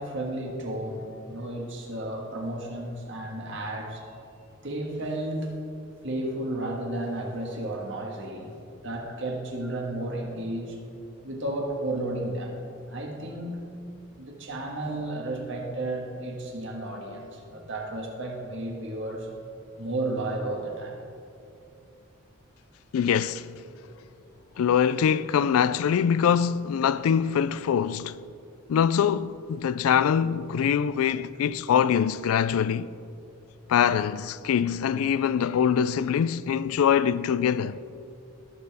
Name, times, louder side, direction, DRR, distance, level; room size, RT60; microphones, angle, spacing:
voice 1, 0.0-4.0 4.6-5.6 6.0-8.5 8.8-10.8 11.2-12.6 12.9-13.6 14.2-19.3 19.8-21.0, right 1 dB, 60° right, 1.6 m, -33 dB
voice 2, 22.9-23.5 24.6-28.2 28.7-32.9 33.7-37.8, left 8 dB, 85° left, 0.3 m, -23 dB
17.5 x 6.8 x 3.5 m
head